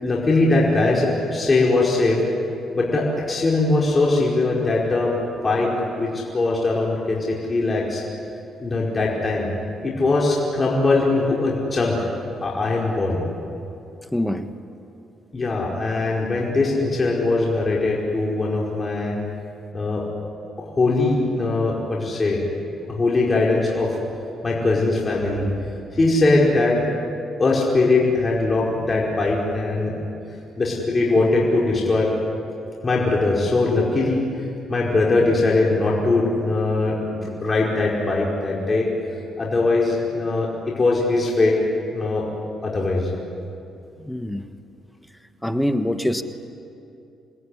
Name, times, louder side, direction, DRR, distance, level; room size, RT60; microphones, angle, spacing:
voice 1, 0.0-2.2 2.7-5.1 5.4-5.7 6.0-8.0 8.6-9.5 9.8-12.0 12.4-13.2 15.3-19.1 19.7-20.0 20.6-22.4 22.9-24.0 24.4-25.4 25.9-26.8 27.4-29.9 30.6-32.1 32.8-34.3 34.7-38.9 39.4-41.5 41.9-42.2 42.6-43.1, left 2 dB, 30° left, -3 dB, 5.1 m, -21 dB
voice 2, 14.1-14.5 44.0-44.4 45.4-46.2, left 1 dB, 5° left, 8 dB, 1.5 m, -24 dB
27.5 x 20.0 x 10.0 m, 2.6 s
cardioid pair, 90°, 0 cm